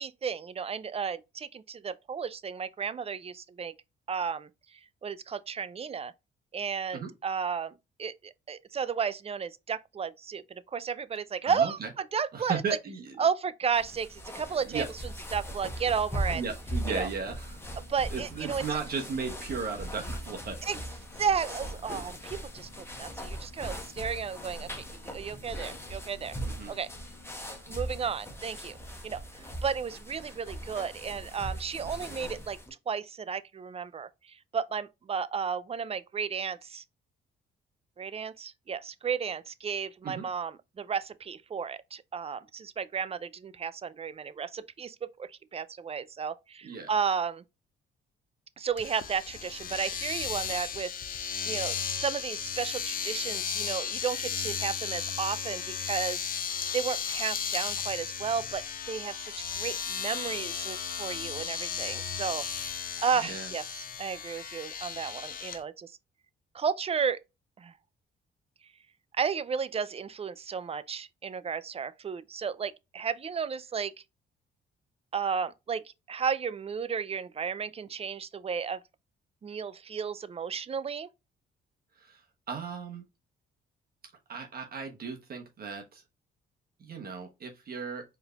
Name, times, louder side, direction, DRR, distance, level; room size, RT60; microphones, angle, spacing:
voice 1, 0.0-3.7 4.1-4.5 5.0-6.1 6.5-11.8 12.1-12.6 13.2-14.8 15.3-16.4 16.9-17.1 17.8-18.6 20.6-20.8 21.2-26.3 26.7-26.9 27.7-28.8 29.0-29.2 29.6-32.6 32.9-36.8 38.0-47.4 48.6-50.9 51.4-56.3 56.7-59.3 59.6-62.7 63.0-63.7 64.0-65.9 66.5-67.2 67.6-67.7 69.2-73.9 75.1-78.8 79.4-81.1, right 6 dB, 30° right, 0.4 m, -33 dB
voice 2, 11.4-11.9 12.3-13.3 14.5-14.9 16.3-17.6 18.1-20.6 26.5-26.7 40.0-40.2 46.6-46.9 63.2-63.5 82.0-83.0 84.3-86.0 86.8-88.0, right 5 dB, 50° right, 1.2 m, -36 dB
sound 1, 13.7-32.7, right 1 dB, 10° left, 1.1 m, -39 dB
Boat Water vehicle, 17.2-28.1, left 8 dB, 85° left, 1.2 m, -58 dB
Domestic sounds home sounds, 48.8-65.6, left 7 dB, 45° left, 0.6 m, -35 dB
4.5 x 3.4 x 2.4 m
cardioid pair, 90°, 20 cm